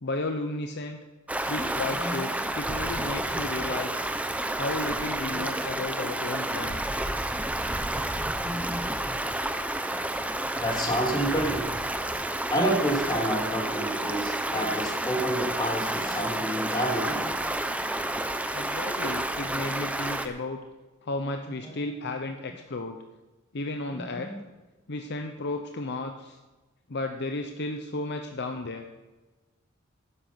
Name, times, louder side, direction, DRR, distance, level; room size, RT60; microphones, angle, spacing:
voice 1, 0.0-1.0 1.5-4.0 4.6-6.8 18.5-20.6 21.0-23.0 23.5-24.3 24.9-26.4 26.9-28.9, left 2 dB, 55° left, 5 dB, 0.8 m, -33 dB
Stream, 1.3-20.3, right 1 dB, 5° right, 0.7 m, -30 dB
voice 2, 1.8-2.2 3.3-3.7 5.3-5.4 8.1-9.2 10.6-11.6 12.5-17.3 21.4-21.9 23.9-24.4, right 1 dB, 20° left, -1 dB, 2.9 m, -30 dB
12.0 x 9.9 x 5.9 m, 1.2 s
head